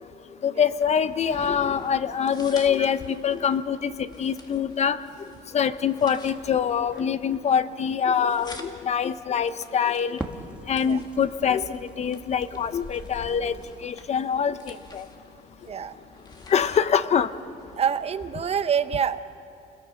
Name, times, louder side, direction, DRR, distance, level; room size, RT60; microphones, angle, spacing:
voice 1, 0.4-5.0 5.5-10.2 10.7-13.5 13.8-14.6 14.9-15.0 16.5-17.3, left 7 dB, 40° left, 13 dB, 0.7 m, -24 dB
sound 1, 0.7-18.6, left 3 dB, 25° left, 2.2 m, -48 dB
Crackle, 6.2-13.9, right 1 dB, 5° right, 1.6 m, -44 dB
voice 2, 15.7-16.0 17.8-19.2, right 7 dB, 35° right, 13 dB, 0.8 m, -26 dB
29.0 x 21.0 x 5.9 m, 2.7 s
cardioid pair, 110°, 17 cm